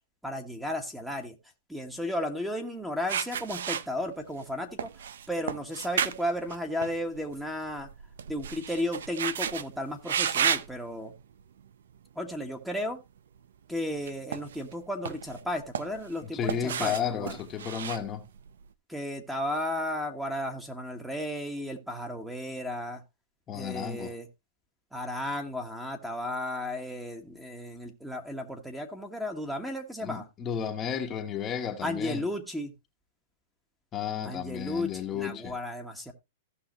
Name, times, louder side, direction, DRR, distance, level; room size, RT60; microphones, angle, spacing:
voice 1, 0.2-1.3 1.7-4.9 5.3-7.9 8.3-11.1 12.1-13.0 13.7-17.3 18.9-23.0 23.5-24.3 24.9-30.2 31.8-32.7 34.2-36.1, left 1 dB, 5° right, 1.3 m, -34 dB
sound 1, 3.1-4.4 4.8-7.3 7.6-9.7 10.0-10.7 11.4-11.6 13.9-14.7 15.0-16.2 16.5-18.6, right 8 dB, 80° right, 0.6 m, -32 dB
voice 2, 16.3-18.3 23.5-24.1 30.0-32.2 33.9-35.6, left 8 dB, 25° left, 1.1 m, -33 dB
15.5 x 5.7 x 2.9 m
hypercardioid pair, 145°, 0 cm